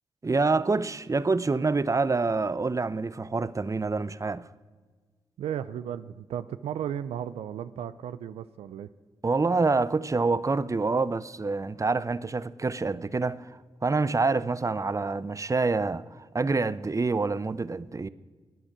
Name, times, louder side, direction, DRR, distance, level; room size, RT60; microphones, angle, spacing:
voice 1, 0.2-4.4 9.2-13.5 13.8-18.1, right 3 dB, 30° right, 0.6 m, -26 dB
voice 2, 5.4-8.9, right 9 dB, 90° right, 0.4 m, -35 dB
14.5 x 10.0 x 6.1 m
supercardioid pair, 40°, 10 cm